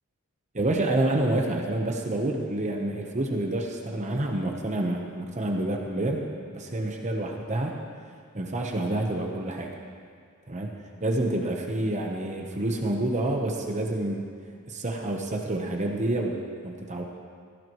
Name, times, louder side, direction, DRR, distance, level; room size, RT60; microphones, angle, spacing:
voice 1, 0.5-7.8 8.3-9.8 10.5-10.7 11.0-14.3 14.7-17.0, right 1 dB, 30° right, 2 dB, 1.0 m, -28 dB
16.5 x 15.0 x 3.1 m, 2.1 s
head